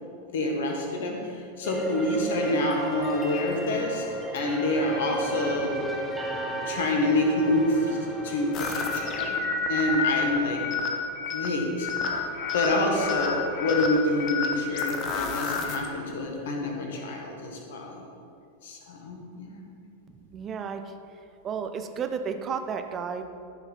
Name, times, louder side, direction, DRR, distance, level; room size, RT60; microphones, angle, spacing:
voice 1, 0.3-4.0 4.3-5.7 6.6-9.4 9.7-10.6 11.3-12.2 12.5-18.0 18.6-19.6, left 1 dB, 55° left, 1 dB, 1.6 m, -27 dB
sound 1, 1.6-9.3, right 2 dB, ahead, 1.3 m, -34 dB
sound 2, 8.5-15.9, left 4 dB, 35° left, 1.0 m, -30 dB
voice 2, 20.1-20.9 21.4-23.2, right 6 dB, 25° right, 7 dB, 0.7 m, -32 dB
13.0 x 5.8 x 4.2 m, 2.5 s
figure-of-eight pair, 90°, 0 cm